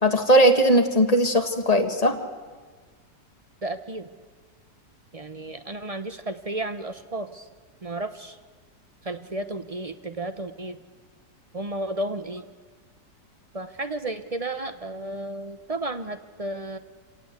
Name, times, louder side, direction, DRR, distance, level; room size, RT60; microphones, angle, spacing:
voice 1, 0.0-2.2, equal, 20° left, 5 dB, 1.7 m, -19 dB
voice 2, 3.6-4.1 5.1-7.5 7.8-8.4 9.0-10.8 11.5-12.4 13.5-16.8, right 2 dB, 35° right, 10 dB, 0.6 m, -33 dB
26.5 x 18.0 x 8.1 m, 1.5 s
omnidirectional pair, 1.9 m